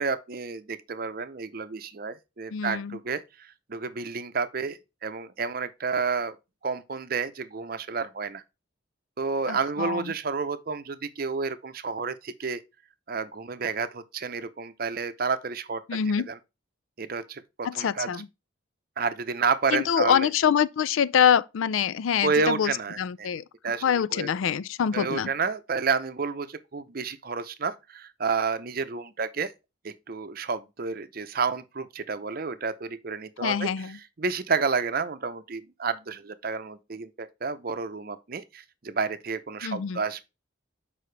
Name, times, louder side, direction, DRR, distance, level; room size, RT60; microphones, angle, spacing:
voice 1, 0.0-6.4 6.6-8.4 9.2-12.6 13.1-15.8 16.3-16.4 17.0-18.1 19.0-20.3 22.2-23.3 23.6-23.8 24.1-24.3 24.9-29.5 29.8-33.7 34.2-40.2, right 5 dB, 45° right, 0.6 m, -30 dB
voice 2, 2.5-3.0 9.5-10.1 15.9-16.3 17.6-18.3 19.7-23.4 23.8-25.3 33.4-34.0 39.6-40.0, left 8 dB, 80° left, 0.4 m, -25 dB
6.7 x 5.0 x 3.3 m
head